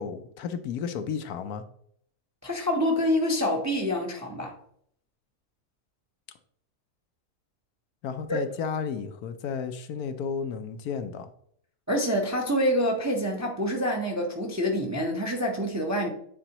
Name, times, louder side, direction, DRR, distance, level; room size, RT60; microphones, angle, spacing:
voice 1, 0.0-1.6 8.0-11.3, left 6 dB, 75° left, 1.1 m, -33 dB
voice 2, 2.4-4.5 8.3-8.4 11.9-16.1, equal, 15° right, 0.6 m, -26 dB
8.9 x 4.2 x 2.9 m
omnidirectional pair, 1.7 m